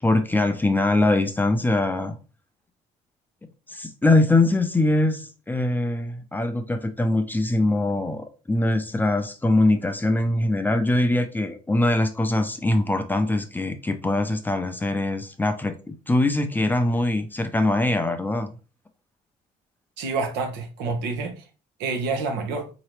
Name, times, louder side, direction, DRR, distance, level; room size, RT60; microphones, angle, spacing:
voice 1, 0.0-2.2 3.7-18.5, left 2 dB, 10° left, 0.5 m, -22 dB
voice 2, 20.0-21.5 21.8-22.7, right 4 dB, 90° right, 1.0 m, -28 dB
4.0 x 2.9 x 3.1 m
cardioid pair, 110°, 17 cm